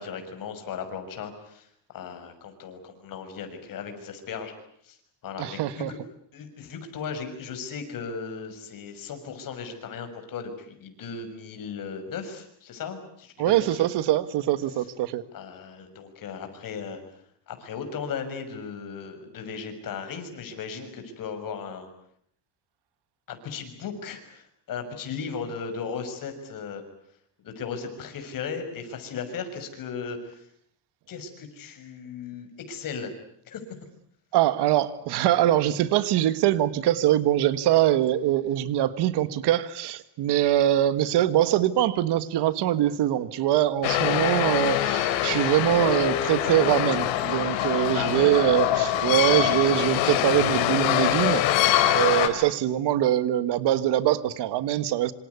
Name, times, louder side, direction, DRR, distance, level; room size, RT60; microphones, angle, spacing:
voice 1, 0.0-4.5 4.8-5.0 5.2-6.0 6.3-13.9 15.3-17.0 17.5-21.9 23.3-26.8 27.4-30.5 31.1-33.1 33.4-33.6 47.9-48.3, left 6 dB, 45° left, 7 dB, 6.6 m, -36 dB
voice 2, 5.4-5.9 13.4-15.2 34.3-55.1, right 12 dB, 60° right, 14 dB, 1.6 m, -23 dB
Building site interior ambience, 43.8-52.3, left 12 dB, 85° left, 4.0 m, -24 dB
27.0 x 26.5 x 8.3 m, 0.69 s
cardioid pair, 150°, 45 cm